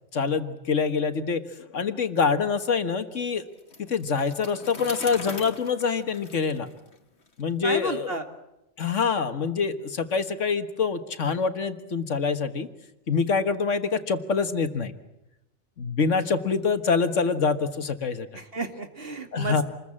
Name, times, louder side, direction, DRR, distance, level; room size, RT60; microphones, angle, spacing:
voice 1, 0.1-3.4 3.9-6.7 7.4-8.2 8.8-12.7 13.1-15.0 15.8-18.4 19.3-19.6, left 5 dB, 85° left, 9 dB, 1.9 m, -25 dB
Bicycle, 3.6-7.4, left 4 dB, 60° left, 2.2 m, -41 dB
voice 2, 7.6-8.2 18.3-19.6, right 2 dB, 50° right, 6 dB, 2.5 m, -32 dB
27.5 x 21.5 x 8.7 m, 0.91 s
omnidirectional pair, 1.2 m